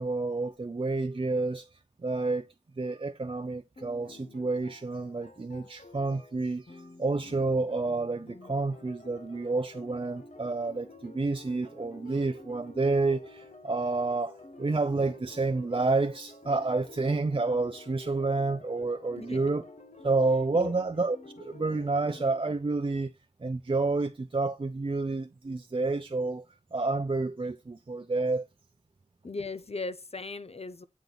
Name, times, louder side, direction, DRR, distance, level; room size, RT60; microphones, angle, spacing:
voice 1, 0.0-1.7 2.0-2.5 2.8-19.6 20.0-23.1 23.4-26.4 26.7-28.5, right 3 dB, 45° right, 0.5 m, -29 dB
sound 1, 3.8-22.4, left 2 dB, 80° left, 1.1 m, -50 dB
voice 2, 29.2-30.9, left 3 dB, 55° left, 0.6 m, -37 dB
8.1 x 4.5 x 4.0 m
wide cardioid pair, 50°, 13 cm